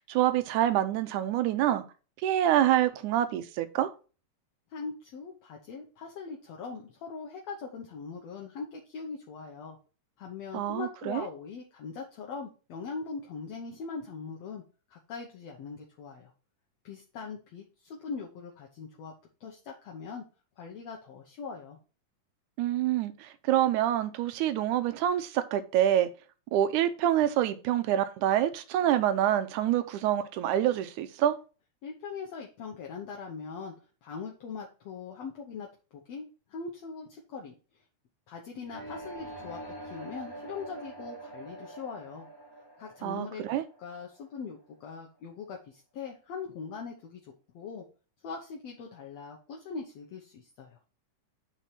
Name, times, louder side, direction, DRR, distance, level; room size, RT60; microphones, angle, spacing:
voice 1, 0.0-1.8 2.2-3.9 10.5-11.3 22.6-26.1 26.5-31.4 43.0-43.7, right 11 dB, 80° right, 2.0 m, -26 dB
voice 2, 4.7-9.8 10.2-14.6 14.9-16.3 16.8-19.1 19.4-20.2 20.6-21.8 31.8-33.7 34.0-35.7 35.9-37.6 38.3-42.3 42.8-43.4 43.8-47.2 47.5-47.8 48.2-50.8, left 5 dB, 65° left, 1.8 m, -41 dB
sound 1, 38.6-44.5, right 1 dB, 5° left, 2.3 m, -45 dB
8.3 x 4.5 x 4.3 m
omnidirectional pair, 3.7 m